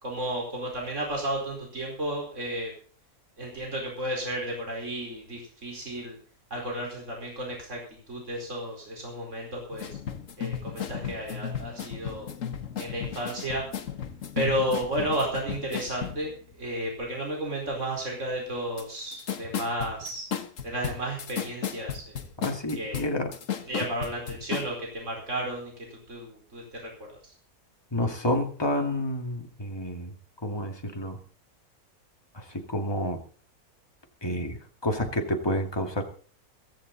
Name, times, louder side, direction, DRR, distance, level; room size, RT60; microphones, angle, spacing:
voice 1, 0.0-2.7 3.4-6.2 6.5-7.8 8.1-9.9 10.4-12.3 12.8-13.6 14.3-20.3 20.6-22.2 22.7-23.0 23.7-25.7 26.1-26.8 27.1-27.3, right 1 dB, 50° right, 0 dB, 5.0 m, -32 dB
sound 1, 9.7-16.3 18.8-18.9 19.1-24.7, left 8 dB, 60° left, 1.6 m, -34 dB
voice 2, 22.4-23.3 27.9-30.1 30.4-31.2 32.3-33.2 34.2-36.0, left 1 dB, 15° left, 3 dB, 2.3 m, -29 dB
15.5 x 15.0 x 4.1 m, 0.43 s
omnidirectional pair, 1.6 m